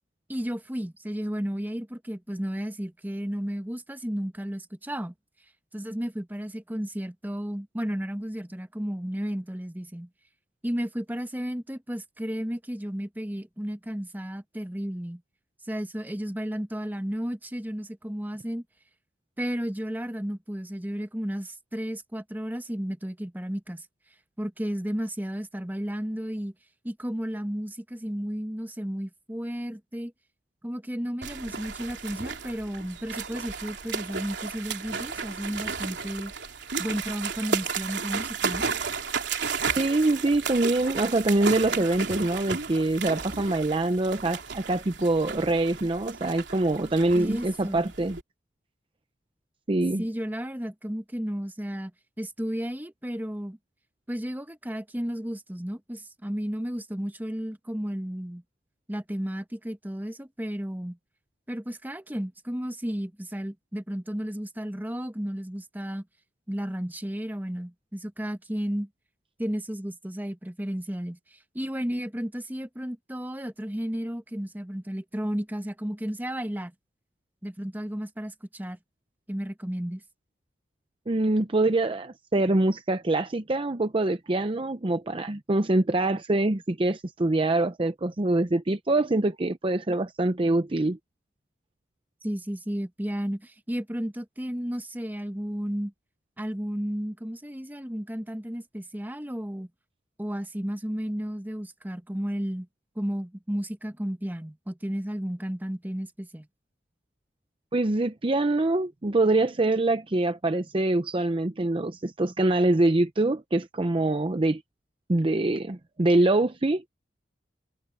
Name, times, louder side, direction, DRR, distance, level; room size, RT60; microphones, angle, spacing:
voice 1, 0.3-5.1 5.7-10.1 10.6-15.2 15.7-18.6 19.4-23.9 24.4-26.5 26.8-30.1 30.6-36.3 36.8-38.7 47.1-47.9 50.0-51.9 52.2-53.6 54.1-58.4 58.9-61.0 61.5-66.1 66.5-68.9 69.4-76.7 77.4-78.8 79.3-80.0 92.2-95.9 96.4-99.7 100.2-102.7 102.9-106.5, equal, 10° right, 1.3 m, -33 dB
sound 1, 31.2-48.2, right 5 dB, 75° right, 3.3 m, -33 dB
voice 2, 39.8-48.2 49.7-50.0 81.1-91.0 107.7-114.6 115.1-116.9, right 2 dB, 30° right, 0.7 m, -24 dB
head